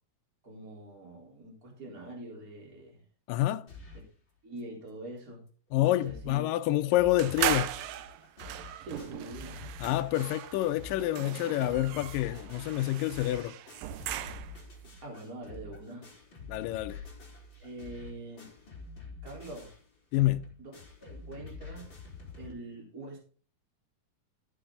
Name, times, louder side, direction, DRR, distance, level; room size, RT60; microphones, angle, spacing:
voice 1, 0.4-3.0 3.9-4.0 4.4-5.4 5.8-6.4 7.2-7.3 8.8-9.8 15.0-16.1 17.6-18.5 19.2-19.7 20.6-20.7 21.0-21.9 22.4-23.2, right 2 dB, 25° right, 4.0 m, -44 dB
voice 2, 3.3-3.6 5.7-7.7 9.8-13.6 16.5-17.0 20.1-20.5, left 15 dB, 80° left, 2.1 m, -28 dB
sound 1, 3.7-4.1 4.6-4.7 4.9-5.0 5.5-5.6 5.8-6.4 6.6-22.5, left 4 dB, 30° left, 4.3 m, -47 dB
sound 2, 7.2-14.7, right 12 dB, 75° right, 2.4 m, -37 dB
14.5 x 7.8 x 3.8 m
omnidirectional pair, 4.3 m